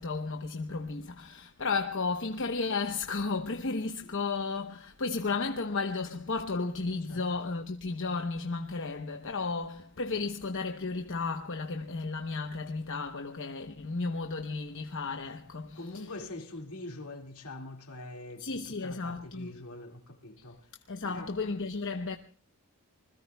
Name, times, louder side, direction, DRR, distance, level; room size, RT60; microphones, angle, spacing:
voice 1, 0.0-16.0 18.4-19.5 20.9-22.2, left 4 dB, 60° left, 1.0 m, -33 dB
voice 2, 6.9-7.3 15.7-20.7 21.0-21.5, left 2 dB, 75° left, 2.3 m, -44 dB
27.5 x 21.0 x 2.3 m
head